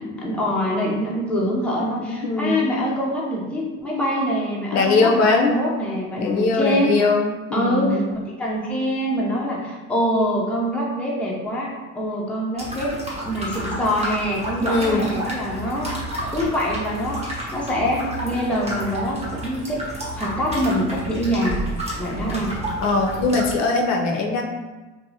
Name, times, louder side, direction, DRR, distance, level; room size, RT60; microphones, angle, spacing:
voice 1, 0.0-6.9 7.5-15.9 16.3-19.8 20.2-21.6 22.0-22.6, equal, 5° left, -4 dB, 0.4 m, -24 dB
voice 2, 2.0-2.6 4.7-5.5 6.2-8.0 14.6-15.1 22.8-24.4, left 3 dB, 65° left, 2 dB, 0.5 m, -21 dB
sound 1, 12.6-23.5, right 1 dB, 20° right, 0.8 m, -31 dB
2.6 x 2.0 x 2.7 m, 1.2 s
cardioid pair, 110°, 30 cm